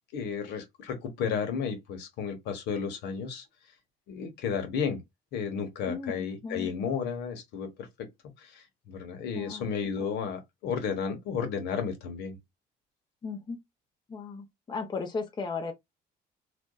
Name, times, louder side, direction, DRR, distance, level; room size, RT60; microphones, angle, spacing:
voice 1, 0.1-3.4 4.1-5.0 5.3-8.1 8.4-12.4, left 6 dB, 80° left, 1.1 m, -33 dB
voice 2, 5.9-6.7 9.3-9.7 10.0-10.1 13.2-13.6 14.1-15.7, left 4 dB, 25° left, 0.8 m, -36 dB
2.5 x 2.3 x 2.2 m
cardioid pair, 110°, 17 cm